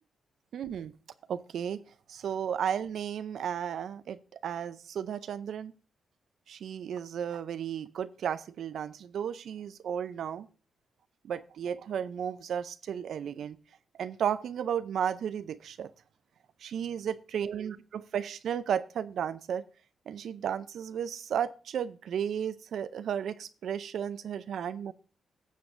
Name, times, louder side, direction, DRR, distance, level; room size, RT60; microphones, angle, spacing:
voice 1, 0.5-0.9 1.3-1.8 2.1-5.7 6.5-10.5 11.2-13.6 14.0-15.9 16.6-19.6 20.1-24.9, right 8 dB, 75° right, 0.5 m, -34 dB
19.5 x 6.8 x 2.6 m
cardioid pair, 65°, 0 cm